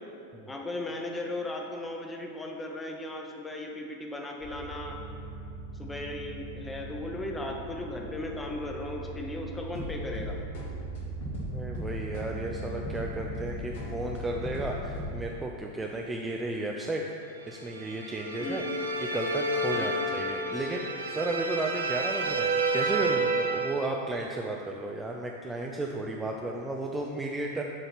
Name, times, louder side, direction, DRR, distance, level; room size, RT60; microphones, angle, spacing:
voice 1, 0.5-5.0 5.8-10.4 18.4-18.7 19.8-20.0, left 1 dB, 10° left, 1 dB, 0.9 m, -37 dB
sound 1, 4.4-15.2, right 1 dB, 55° left, 1.4 m, -38 dB
voice 2, 11.5-17.1 17.5-18.6 19.0-27.6, right 2 dB, 10° right, 0 dB, 0.4 m, -34 dB
sound 2, 17.7-23.9, right 2 dB, 70° right, 0.6 m, -30 dB
7.3 x 3.9 x 5.8 m, 2.5 s
figure-of-eight pair, 90°, 0 cm